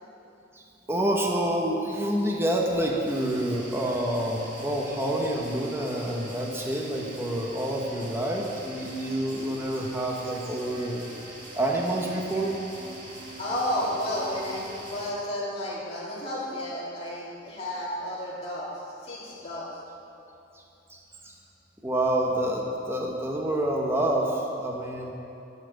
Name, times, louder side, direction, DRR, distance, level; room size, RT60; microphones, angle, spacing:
voice 1, 0.5-11.0 11.5-12.6 20.9-21.3 21.8-25.1, right 1 dB, 15° right, -1 dB, 1.1 m, -28 dB
sound 1, 3.0-15.1, right 2 dB, 45° right, 2.0 m, -43 dB
voice 2, 13.4-19.7, left 1 dB, 35° left, -8 dB, 3.1 m, -32 dB
11.5 x 5.9 x 8.2 m, 2.9 s
head